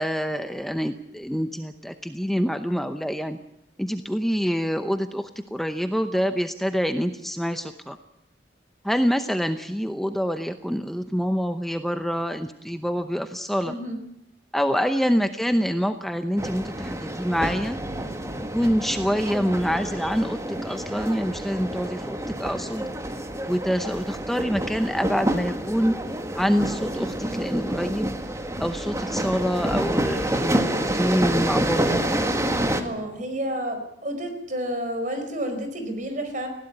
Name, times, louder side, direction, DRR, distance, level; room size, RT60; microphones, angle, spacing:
voice 1, 0.0-3.4 3.8-8.0 8.8-13.7 14.5-17.8 18.5-22.8 23.5-25.9 26.3-28.1 28.6-32.2, equal, ahead, 8 dB, 0.7 m, -26 dB
voice 2, 13.6-14.0 32.7-36.5, equal, 45° right, 7 dB, 4.7 m, -30 dB
sound 1, 16.4-32.8, right 1 dB, 15° right, 1.7 m, -28 dB
19.5 x 16.5 x 9.9 m, 0.79 s
head